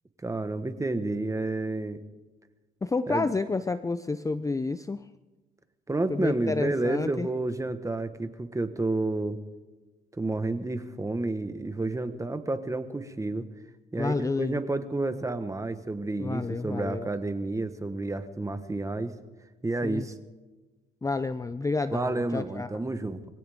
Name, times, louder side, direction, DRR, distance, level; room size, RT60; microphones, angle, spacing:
voice 1, 0.2-2.0 3.1-3.3 5.9-9.4 10.2-13.5 13.9-19.1 19.6-20.1 21.9-23.2, right 2 dB, 15° right, 9 dB, 1.3 m, -30 dB
voice 2, 2.8-5.1 6.1-7.3 14.0-14.6 16.2-17.1 19.8-20.1 21.0-22.7, left 3 dB, 15° left, 12 dB, 0.5 m, -30 dB
23.0 x 17.0 x 3.6 m, 1.2 s
cardioid pair, 90°, 20 cm